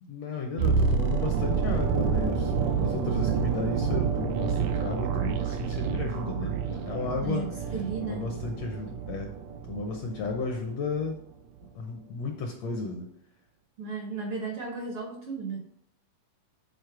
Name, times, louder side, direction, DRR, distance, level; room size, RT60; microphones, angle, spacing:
voice 1, 0.0-7.5 8.0-9.3 9.7-11.1 11.7-13.1, left 4 dB, 75° left, 3 dB, 1.6 m, -34 dB
sound 1, 0.6-10.6 10.8-11.1, right 6 dB, 85° right, 2.3 m, -28 dB
voice 2, 7.2-8.3 13.8-15.6, right 5 dB, 65° right, 1 dB, 1.4 m, -34 dB
8.2 x 4.1 x 4.7 m, 0.69 s
omnidirectional pair, 3.7 m